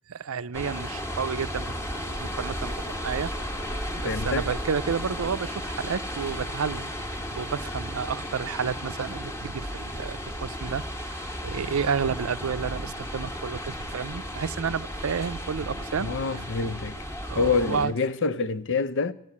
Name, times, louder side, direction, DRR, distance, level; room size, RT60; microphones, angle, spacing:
voice 1, 0.1-1.8 2.1-3.3 3.9-16.7 17.3-17.9, right 6 dB, 75° right, 0.5 m, -31 dB
sound 1, 0.5-17.9, equal, 15° left, 1.3 m, -34 dB
voice 2, 4.0-4.5 16.0-16.9 17.4-19.1, left 4 dB, 60° left, 0.6 m, -26 dB
15.5 x 9.0 x 8.6 m
head